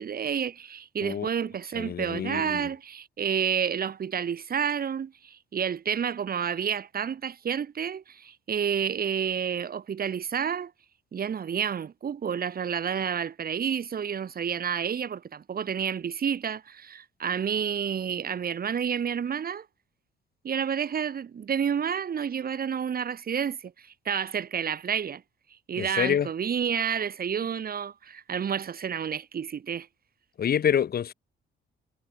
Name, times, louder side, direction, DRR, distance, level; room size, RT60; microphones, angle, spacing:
voice 1, 0.0-10.7 11.1-19.7 20.4-25.2 25.7-29.9, right 7 dB, 50° right, 2.4 m, -30 dB
voice 2, 1.7-2.6 25.8-26.3 30.4-31.1, left 8 dB, 50° left, 1.2 m, -27 dB
cardioid pair, 90°, 20 cm